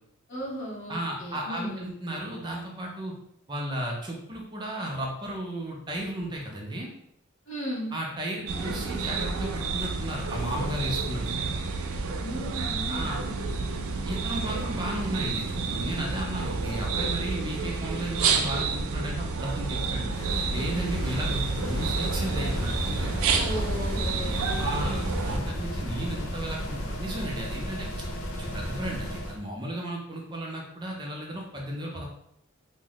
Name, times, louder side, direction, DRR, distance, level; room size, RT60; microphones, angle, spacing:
voice 1, 0.3-1.9 7.5-8.0 12.2-13.4 13.6-14.0 23.4-25.5, equal, 60° left, -5 dB, 1.1 m, -36 dB
voice 2, 0.9-3.1 3.5-6.9 7.9-11.3 12.9-13.2 14.0-20.1 20.5-23.1 24.6-25.0 25.2-27.9 28.3-32.1, right 1 dB, 20° right, -1 dB, 0.5 m, -34 dB
sound 1, 8.5-25.4, right 4 dB, 80° right, 0.4 m, -30 dB
sound 2, 20.0-29.4, equal, 85° left, 0.7 m, -33 dB
2.9 x 2.0 x 3.9 m, 0.76 s
head